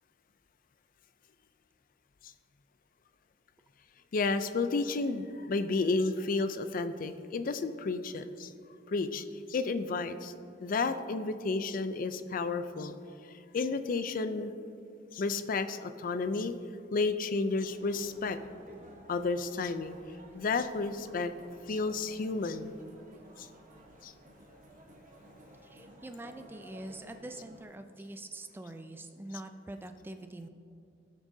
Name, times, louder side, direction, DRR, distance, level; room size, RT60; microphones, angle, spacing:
voice 1, 4.1-8.5 8.9-10.3 10.6-12.9 13.5-14.5 15.1-16.5 16.9-18.4 19.1-20.0 20.3-21.3 21.7-22.8 23.4-23.5 24.0-24.1, left 3 dB, 50° left, 10 dB, 0.4 m, -31 dB
sound 1, 17.6-27.6, right 1 dB, 45° right, 1.2 m, -55 dB
voice 2, 25.6-30.5, right 1 dB, 10° right, 7 dB, 0.4 m, -44 dB
17.0 x 6.1 x 2.7 m, 2.4 s
head